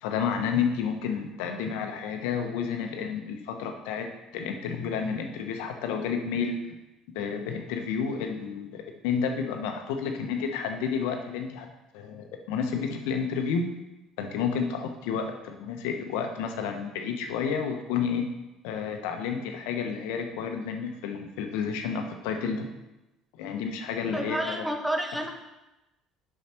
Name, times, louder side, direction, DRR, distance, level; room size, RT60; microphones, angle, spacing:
voice 1, 0.0-4.1 4.3-6.6 7.1-11.7 11.9-13.6 14.2-18.3 18.6-22.7 23.3-24.6, left 6 dB, 75° left, 4 dB, 1.0 m, -30 dB
voice 2, 24.1-25.3, right 1 dB, 5° right, 3 dB, 1.3 m, -29 dB
7.4 x 5.6 x 4.4 m, 0.98 s
hypercardioid pair, 65°, 0 cm